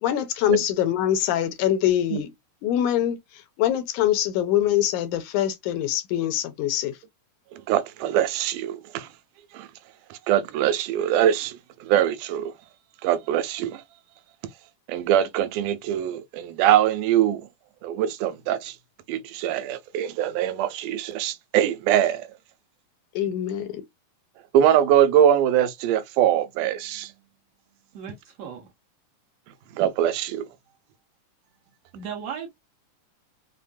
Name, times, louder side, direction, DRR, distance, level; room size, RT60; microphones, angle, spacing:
voice 1, 0.0-2.3 2.6-3.2 3.6-6.9 23.2-23.8, left 11 dB, 80° left, 2.1 m, -24 dB
voice 2, 7.7-9.1 9.5-9.7 10.1-12.5 13.0-13.8 14.9-17.4 17.8-18.7 19.1-22.3 24.5-27.1 29.8-30.4, right 10 dB, 85° right, 2.1 m, -22 dB
voice 3, 27.9-28.7 31.9-32.5, right 7 dB, 65° right, 1.8 m, -36 dB
5.4 x 2.1 x 2.4 m
omnidirectional pair, 3.6 m